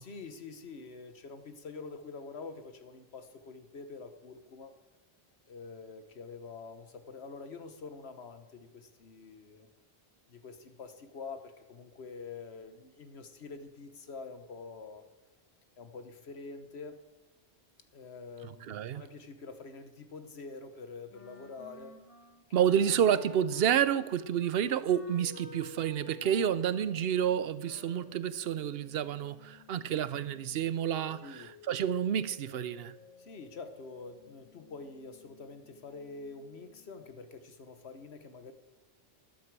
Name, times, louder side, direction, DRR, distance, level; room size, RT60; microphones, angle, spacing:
voice 1, 0.0-4.7 5.5-9.7 10.3-15.1 15.8-17.0 17.9-21.9 31.2-31.5 33.2-38.5, left 4 dB, 85° left, 1.4 m, -46 dB
voice 2, 18.4-19.0 22.5-32.9, right 9 dB, 70° right, 0.9 m, -29 dB
Wind instrument woodwind instrument, 21.1-28.2, equal, 30° left, 1.7 m, -53 dB
sound 1, 25.1-37.1, left 4 dB, 65° left, 4.3 m, -54 dB
12.5 x 11.5 x 4.7 m
omnidirectional pair, 1.1 m